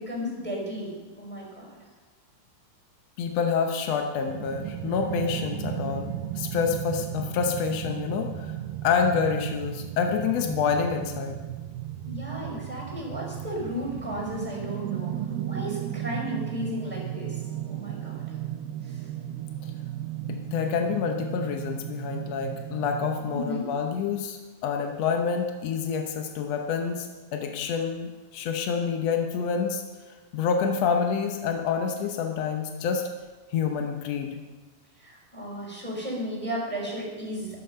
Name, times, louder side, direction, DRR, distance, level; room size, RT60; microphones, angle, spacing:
voice 1, 0.0-1.7 12.1-15.1 15.5-17.4 17.7-18.1 18.8-19.0 23.3-23.7 35.0-37.6, equal, 5° left, -2 dB, 5.2 m, -34 dB
voice 2, 3.2-8.6 8.8-11.4 19.6-19.7 20.3-33.0 33.5-34.4, left 6 dB, 70° left, 3 dB, 1.6 m, -28 dB
sound 1, 4.3-23.5, right 12 dB, 80° right, 2.4 m, -35 dB
14.0 x 11.5 x 5.5 m, 1.3 s
omnidirectional pair, 4.1 m